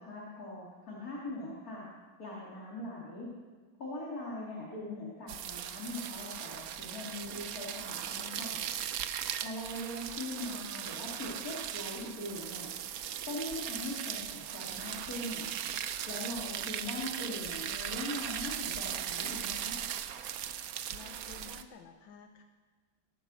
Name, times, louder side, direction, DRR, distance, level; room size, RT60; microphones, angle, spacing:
voice 1, 0.0-1.8 2.2-3.3 3.8-8.6 9.4-12.7 13.3-15.5 16.1-19.8, left 1 dB, 50° left, -5 dB, 2.9 m, -41 dB
sound 1, 5.3-21.6, right 10 dB, 65° right, 1.0 m, -38 dB
voice 2, 20.9-22.4, left 6 dB, 90° left, 5 dB, 1.6 m, -52 dB
20.0 x 9.1 x 6.3 m, 1.5 s
omnidirectional pair, 2.1 m